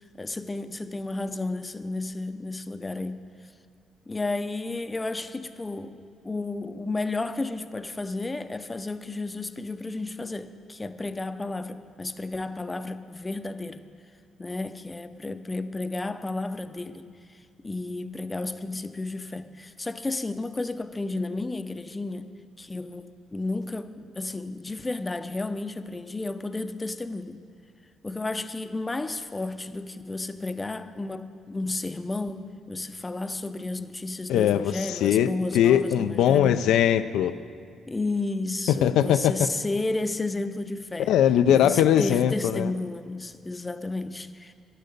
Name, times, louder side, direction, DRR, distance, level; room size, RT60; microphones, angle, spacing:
voice 1, 0.2-3.2 4.1-13.8 14.4-17.4 17.6-22.3 22.6-27.4 28.0-36.5 37.9-41.1 41.5-44.5, left 2 dB, 20° left, 11 dB, 0.5 m, -32 dB
voice 2, 34.3-37.3 38.8-39.4 41.1-42.7, left 10 dB, 85° left, 10 dB, 0.3 m, -21 dB
11.0 x 10.5 x 6.7 m, 2.2 s
cardioid pair, 90°, 0 cm